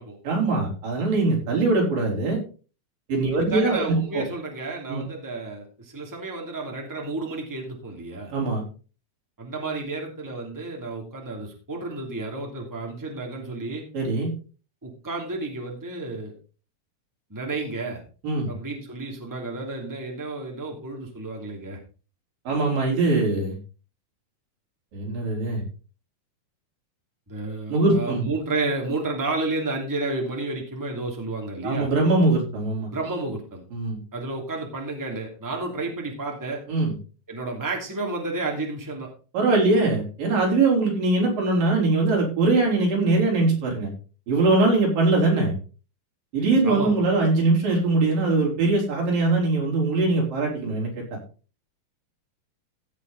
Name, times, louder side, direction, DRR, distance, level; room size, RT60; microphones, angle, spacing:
voice 1, 0.2-2.4 3.1-4.2 4.9-5.0 8.3-8.6 13.9-14.3 18.2-18.5 22.5-23.6 24.9-25.6 27.7-28.3 31.6-32.9 33.7-34.0 36.7-36.9 39.3-43.9 44.3-45.5 46.3-51.0, right 3 dB, 80° right, -2 dB, 5.8 m, -22 dB
voice 2, 3.3-8.3 9.4-13.8 14.8-16.3 17.3-18.0 18.5-21.8 27.3-31.9 32.9-33.6 34.1-36.6 37.3-39.1 46.6-47.0, right 2 dB, 5° right, 1 dB, 2.3 m, -31 dB
15.5 x 6.5 x 4.0 m, 0.36 s
omnidirectional pair, 3.9 m